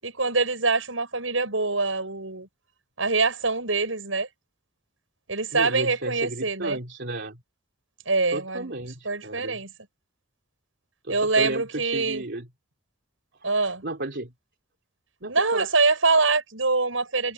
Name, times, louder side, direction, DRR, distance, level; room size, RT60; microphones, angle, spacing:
voice 1, 0.0-2.5 3.0-4.3 5.3-6.8 8.1-8.7 9.0-9.7 11.1-12.2 13.4-13.8 15.3-17.3, right 3 dB, 80° right, 7.5 m, -24 dB
voice 2, 5.5-7.4 8.3-9.6 11.0-12.5 13.8-14.3 15.2-15.7, right 2 dB, 60° right, 3.2 m, -33 dB
head